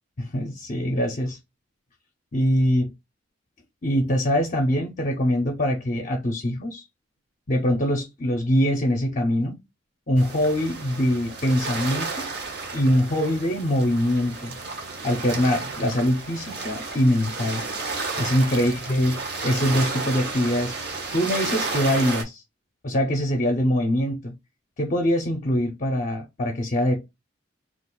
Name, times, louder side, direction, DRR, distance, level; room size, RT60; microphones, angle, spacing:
voice 1, 0.2-1.4 2.3-2.9 3.8-6.8 7.5-9.6 10.1-12.3 12.7-14.5 15.0-17.6 18.2-20.7 21.1-22.4 22.8-24.3 24.8-27.1, equal, 40° left, 0.5 m, -23 dB
sound 1, 10.2-22.2, right 3 dB, 55° right, 0.8 m, -32 dB
2.4 x 2.4 x 3.7 m
head